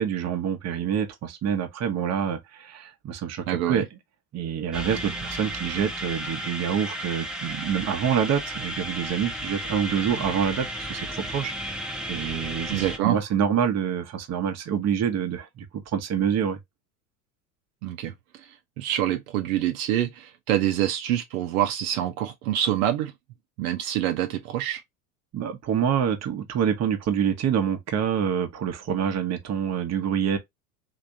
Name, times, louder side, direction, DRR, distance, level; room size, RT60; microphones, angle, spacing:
voice 1, 0.0-3.9 4.3-16.6 25.3-30.4, right 8 dB, 35° right, 1.0 m, -27 dB
voice 2, 3.5-3.8 12.7-13.2 17.8-18.1 18.8-23.1 23.6-24.8, right 12 dB, 65° right, 0.9 m, -26 dB
sound 1, 4.7-13.0, right 1 dB, ahead, 0.9 m, -33 dB
3.4 x 2.9 x 2.7 m
hypercardioid pair, 85°, 45 cm